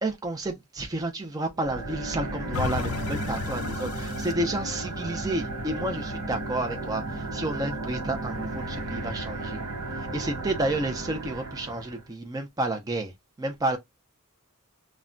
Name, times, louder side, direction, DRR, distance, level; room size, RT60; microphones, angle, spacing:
voice 1, 0.0-9.6 9.9-13.1 13.4-13.8, right 2 dB, 15° right, 0.4 m, -31 dB
sound 1, 1.5-12.0, right 2 dB, 90° right, 0.8 m, -34 dB
sound 2, 2.5-7.6 8.1-8.2, left 6 dB, 65° left, 0.4 m, -37 dB
2.1 x 2.1 x 3.7 m
head